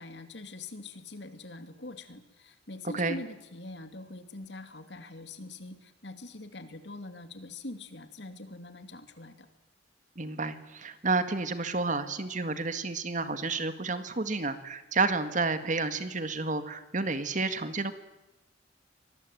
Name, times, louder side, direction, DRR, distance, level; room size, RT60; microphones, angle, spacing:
voice 1, 0.0-9.5, left 2 dB, 65° left, 9 dB, 2.7 m, -43 dB
voice 2, 10.2-17.9, right 3 dB, 45° right, 10 dB, 1.9 m, -30 dB
25.0 x 20.0 x 9.3 m, 0.98 s
head